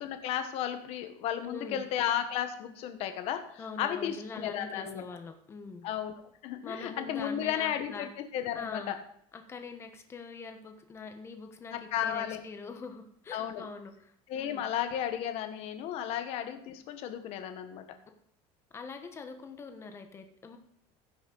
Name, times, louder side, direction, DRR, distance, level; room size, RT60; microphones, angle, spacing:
voice 1, 0.0-5.0 5.8-9.0 11.7-12.4 13.3-13.7 14.3-17.8, left 10 dB, 50° left, 8 dB, 1.2 m, -34 dB
voice 2, 1.4-1.9 3.6-5.9 6.6-8.1 8.5-8.9 9.3-14.6 18.7-20.6, left 4 dB, 20° left, 6 dB, 1.1 m, -43 dB
15.5 x 6.2 x 3.9 m, 0.66 s
cardioid pair, 165°, 13 cm